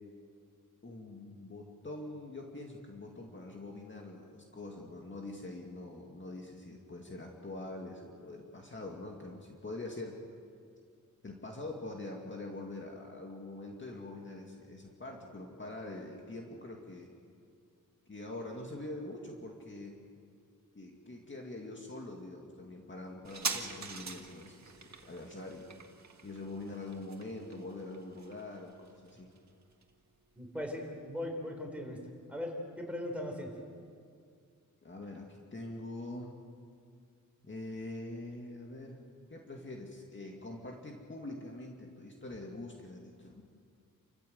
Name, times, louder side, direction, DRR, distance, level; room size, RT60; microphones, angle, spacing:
voice 1, 0.8-10.2 11.2-17.1 18.1-20.0 20.7-24.8 25.1-25.7 26.2-29.3 34.8-36.4 37.4-39.0 39.3-43.4, left 2 dB, 35° left, 0 dB, 2.2 m, -44 dB
sound 1, 23.2-30.3 30.6-30.7, right 4 dB, 55° right, 1.9 m, -43 dB
voice 2, 30.4-32.0 32.3-33.5, left 1 dB, 5° right, 1 dB, 4.3 m, -39 dB
29.0 x 15.0 x 7.8 m, 2.3 s
wide cardioid pair, 115°, 33 cm